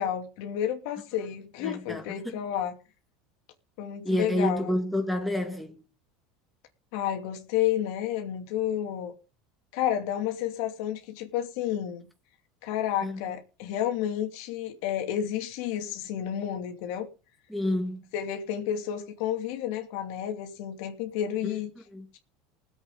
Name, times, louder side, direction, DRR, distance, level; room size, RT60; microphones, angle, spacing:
voice 1, 0.0-2.8 3.8-4.7 6.9-9.1 9.7-12.1 12.6-17.1 18.1-21.7, left 10 dB, 70° left, 2.6 m, -31 dB
voice 2, 1.6-2.4 4.0-5.8 13.0-13.2 17.5-18.0 21.4-21.6 21.9-22.1, left 1 dB, ahead, 2.5 m, -29 dB
20.0 x 8.2 x 3.9 m
supercardioid pair, 105°, 0 cm